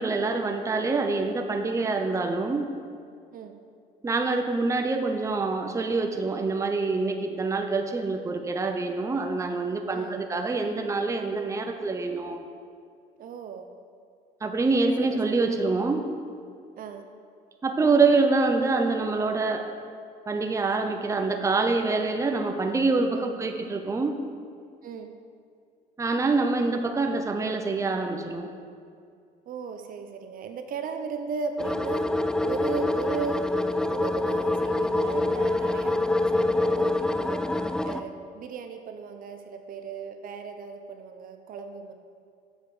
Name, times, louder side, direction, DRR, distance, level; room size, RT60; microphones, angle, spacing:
voice 1, 0.0-2.7 4.0-12.4 14.4-16.0 17.6-19.6 20.3-24.1 26.0-28.5, right 3 dB, 20° right, 4 dB, 0.7 m, -25 dB
voice 2, 9.9-10.2 13.2-13.7 15.0-15.3 16.8-17.1 23.1-23.3 24.8-25.1 29.5-32.1 32.4-33.5 33.9-37.5 37.8-41.9, right 5 dB, 55° right, 6 dB, 0.7 m, -36 dB
sound 1, 31.6-38.0, left 2 dB, 5° left, 0.3 m, -26 dB
8.1 x 7.0 x 4.9 m, 2.3 s
cardioid pair, 110°, 17 cm